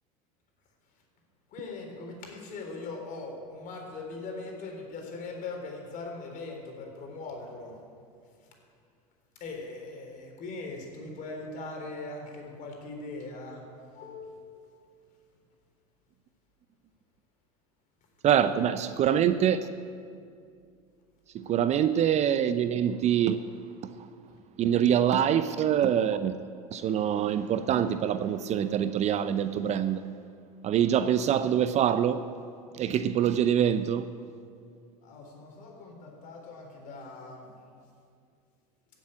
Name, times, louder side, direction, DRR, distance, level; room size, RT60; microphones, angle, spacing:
voice 1, 1.5-7.8 8.2-8.5 9.4-13.7 13.9-14.8 18.3-19.2 24.3-24.4 35.0-37.5, left 3 dB, 45° left, 3.9 m, -41 dB
voice 2, 18.2-19.7 21.3-23.4 23.8-24.1 24.6-30.0 30.6-32.2 32.7-34.1, right 9 dB, 35° right, 0.6 m, -25 dB
16.5 x 7.6 x 8.6 m
hypercardioid pair, 80°, 19 cm